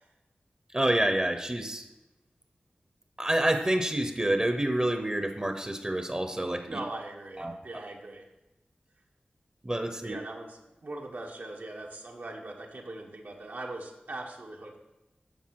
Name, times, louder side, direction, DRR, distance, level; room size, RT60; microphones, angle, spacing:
voice 1, 0.7-1.8 3.2-6.8 7.4-7.6 9.6-10.2, right 1 dB, 25° right, 7 dB, 0.9 m, -28 dB
voice 2, 6.7-8.2 10.0-14.8, right 2 dB, 70° right, -1 dB, 1.5 m, -40 dB
10.5 x 6.8 x 4.7 m, 0.98 s
wide cardioid pair, 55°, 3 cm